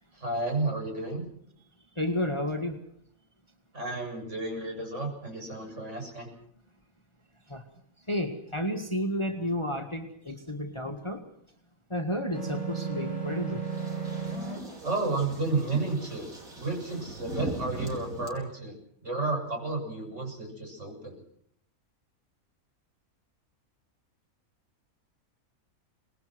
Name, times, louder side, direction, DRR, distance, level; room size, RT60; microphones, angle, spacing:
voice 1, 0.2-1.2 3.7-6.3 14.8-16.3 16.5-18.7 19.0-21.2, right 3 dB, 55° right, 2 dB, 7.9 m, -32 dB
voice 2, 2.0-2.8 7.5-7.6 8.1-11.2 11.9-13.7, equal, 20° left, 5 dB, 1.9 m, -31 dB
sound 1, 12.3-14.6, right 5 dB, 25° right, 5.9 m, -33 dB
sound 2, 13.6-18.3, right 2 dB, 70° right, 5.2 m, -40 dB
25.5 x 20.5 x 6.2 m, 0.69 s
omnidirectional pair, 1.5 m